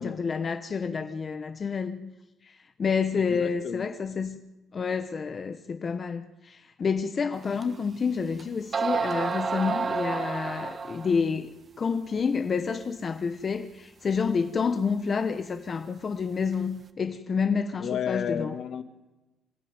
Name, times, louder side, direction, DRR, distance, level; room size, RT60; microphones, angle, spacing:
voice 1, 0.0-2.1 2.4-4.4 4.7-18.5, left 5 dB, 30° left, 1.1 m, -29 dB
voice 2, 3.3-3.9 17.8-18.8, left 8 dB, 50° left, 1.7 m, -32 dB
sound 1, 7.6-7.7 8.4-8.5 8.7-11.2, right 5 dB, 30° right, 1.6 m, -29 dB
27.5 x 16.0 x 9.6 m
cardioid pair, 145°, 0 cm